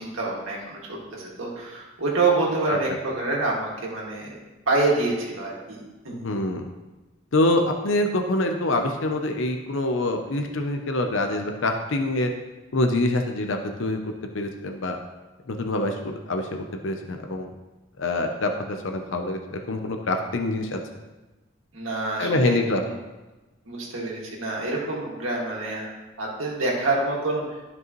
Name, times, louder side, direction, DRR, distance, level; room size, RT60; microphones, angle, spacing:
voice 1, 0.0-4.4 4.7-5.8 6.0-6.3 21.7-22.9 23.7-27.6, right 3 dB, 85° right, -3 dB, 2.0 m, -27 dB
voice 2, 6.1-6.7 7.3-12.3 12.7-15.0 15.5-17.5 18.0-20.8 22.2-22.8, left 2 dB, 75° left, 4 dB, 0.7 m, -25 dB
12.0 x 5.4 x 3.1 m, 1.1 s
head